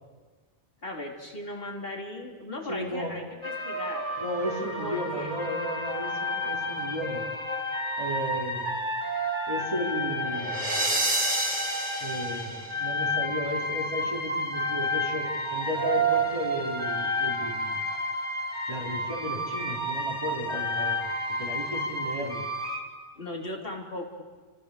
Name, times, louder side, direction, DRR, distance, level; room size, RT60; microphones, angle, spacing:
voice 1, 0.8-4.1 4.8-5.4 23.2-24.2, left 1 dB, 55° left, -1 dB, 4.0 m, -37 dB
voice 2, 2.6-3.2 4.2-7.3 8.0-8.8 9.5-10.9 12.0-17.8 18.7-21.1 21.4-22.5, equal, 25° right, -3 dB, 4.8 m, -34 dB
sound 1, 3.4-22.8, equal, 45° right, 3.6 m, -30 dB
29.5 x 28.5 x 6.9 m, 1.4 s
omnidirectional pair, 1.1 m